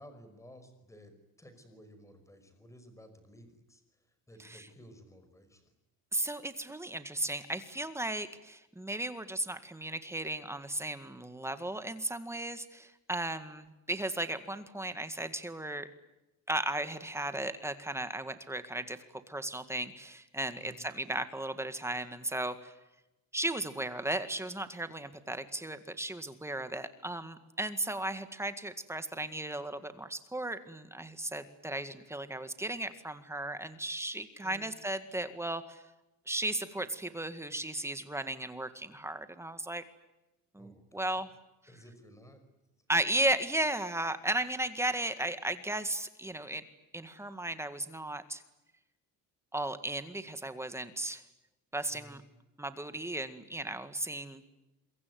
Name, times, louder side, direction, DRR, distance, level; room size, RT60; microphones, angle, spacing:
voice 1, 0.0-3.8 4.3-5.7 20.6-20.8 34.4-34.7 40.6-41.2 41.7-42.4 51.9-52.2, equal, 10° left, 9 dB, 5.5 m, -55 dB
voice 2, 6.1-15.9 16.5-19.0 19.3-22.7 23.3-35.8 36.3-39.8 40.5-41.3 42.9-46.6 46.9-48.4 49.5-51.2 51.7-52.2 52.6-54.4, right 1 dB, 5° right, 10 dB, 1.9 m, -35 dB
27.0 x 23.5 x 9.4 m, 0.97 s
cardioid pair, 155°, 35 cm